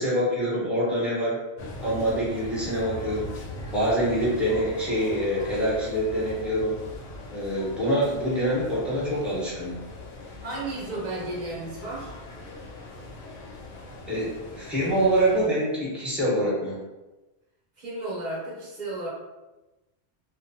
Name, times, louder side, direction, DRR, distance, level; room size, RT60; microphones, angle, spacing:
voice 1, 0.0-1.4 1.8-3.3 3.7-6.8 7.3-9.8 14.1-16.8, right 1 dB, ahead, -8 dB, 0.8 m, -25 dB
sound 1, 1.6-15.5, left 2 dB, 80° left, 0.9 m, -40 dB
voice 2, 10.4-12.1 17.8-19.1, right 2 dB, 40° right, -5 dB, 0.8 m, -33 dB
2.5 x 2.2 x 2.7 m, 1.1 s
omnidirectional pair, 1.2 m